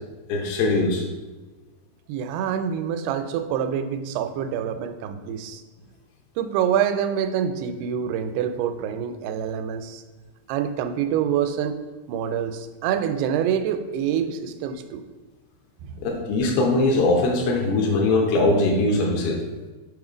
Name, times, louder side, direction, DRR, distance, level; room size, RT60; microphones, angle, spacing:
voice 1, 0.3-1.0 16.0-19.4, left 2 dB, 85° left, 0 dB, 2.7 m, -21 dB
voice 2, 2.1-5.6 6.4-10.0 10.5-11.8 12.1-15.0 15.8-15.9, right 8 dB, 90° right, 8 dB, 2.5 m, -26 dB
6.8 x 3.7 x 4.9 m, 1.3 s
omnidirectional pair, 4.5 m